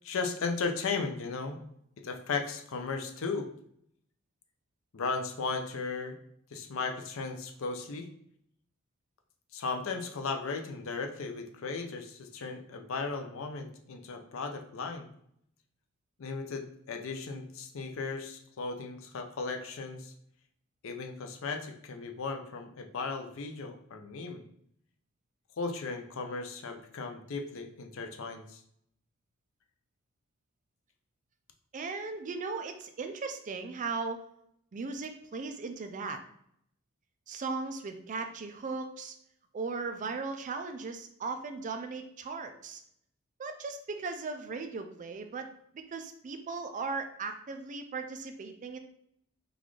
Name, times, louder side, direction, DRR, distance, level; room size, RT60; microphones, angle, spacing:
voice 1, 0.0-1.6 2.0-3.5 4.9-6.1 6.5-8.1 9.5-15.1 16.2-20.1 20.8-24.4 25.6-28.6, left 4 dB, 70° left, 5 dB, 0.5 m, -36 dB
voice 2, 31.7-34.2 34.7-36.2 37.3-39.1 39.5-42.8 43.4-45.5 45.7-48.8, right 4 dB, 35° right, 7 dB, 0.4 m, -37 dB
3.8 x 2.4 x 3.1 m, 0.70 s
head